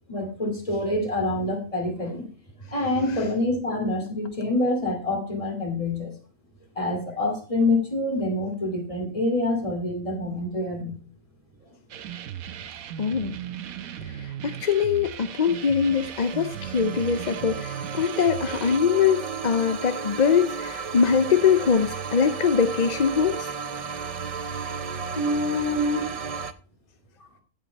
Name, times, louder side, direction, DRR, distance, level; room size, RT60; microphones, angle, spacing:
voice 1, 0.1-2.3 2.7-6.1 6.8-11.0 25.1-26.1, left 2 dB, 25° left, 2 dB, 2.6 m, -26 dB
sound 1, 11.9-18.8, right 10 dB, 90° right, 1.2 m, -37 dB
voice 2, 13.0-13.4 14.1-23.5, left 6 dB, 50° left, 10 dB, 0.5 m, -23 dB
sound 2, 15.3-26.5, right 6 dB, 55° right, 0.4 m, -34 dB
15.5 x 5.4 x 4.0 m, 0.36 s
omnidirectional pair, 1.4 m